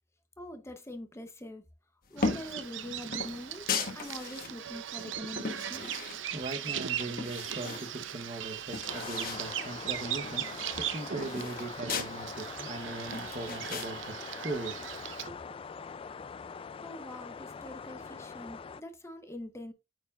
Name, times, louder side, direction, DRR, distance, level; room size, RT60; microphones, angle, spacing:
voice 1, 0.4-1.6 2.1-3.7 3.9-6.0 16.8-19.7, left 1 dB, 15° left, 0.8 m, -44 dB
sound 1, 2.2-2.6 3.1-4.5 5.0-6.5 6.9-7.9 8.3-8.4 8.6-9.5 9.8-9.9 10.2-12.1 12.6-13.9, left 4 dB, 50° left, 1.2 m, -36 dB
Bird vocalization bird call bird song, 2.2-15.3, right 10 dB, 85° right, 0.6 m, -39 dB
voice 2, 6.3-14.1 14.4-14.8 15.3-15.4, right 2 dB, 35° right, 0.9 m, -39 dB
sound 2, 8.9-18.8, left 5 dB, 30° left, 0.3 m, -43 dB
9.2 x 4.5 x 2.4 m
head